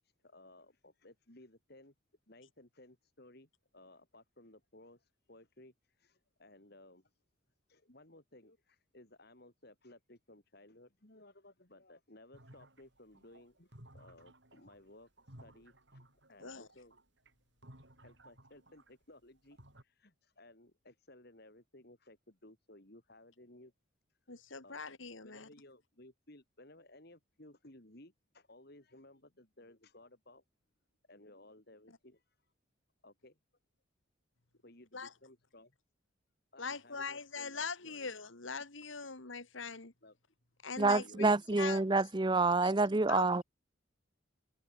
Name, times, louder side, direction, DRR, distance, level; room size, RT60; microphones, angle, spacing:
voice 1, 0.0-1.9 2.3-7.1 7.7-15.1 15.4-16.0 16.3-16.9 18.0-23.7 24.6-24.8 25.2-30.4 31.1-32.2 33.0-33.4 34.6-35.7 36.5-38.1 40.0-40.2 40.9-41.4, left 1 dB, 50° left, 3.2 m, -59 dB
sound 1, 12.3-19.0 19.4-19.8, right 1 dB, 55° right, 7.2 m, -58 dB
voice 2, 24.3-25.5 34.9-35.1 36.6-39.9 40.6-41.8 42.6-42.7 43.1-43.3, left 5 dB, 70° left, 2.3 m, -42 dB
voice 3, 40.8-43.4, right 3 dB, 20° right, 0.6 m, -28 dB
head